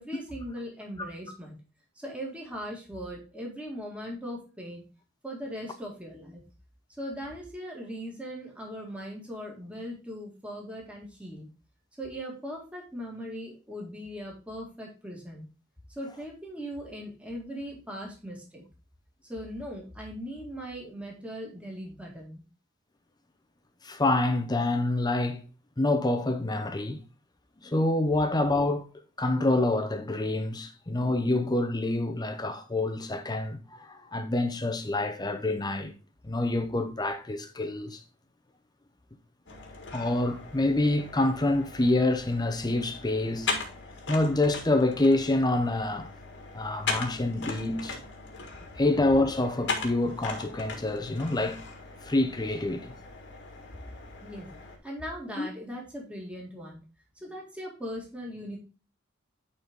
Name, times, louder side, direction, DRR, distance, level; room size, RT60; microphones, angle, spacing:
voice 1, 0.0-1.6 2.0-4.8 5.2-6.4 7.0-11.5 12.0-15.5 15.9-18.6 19.3-22.4 54.2-54.5 54.8-56.8 57.2-58.6, equal, 5° right, 2.0 m, -39 dB
voice 2, 23.8-25.4 25.8-27.0 27.6-28.9 29.2-35.9 36.2-38.0 39.9-43.5 44.1-46.1 46.5-48.0 48.8-51.6 52.0-52.9 55.4-55.5, left 2 dB, 20° left, 0.7 m, -27 dB
sound 1, 39.5-54.8, left 4 dB, 65° left, 1.6 m, -39 dB
9.1 x 4.2 x 3.6 m
head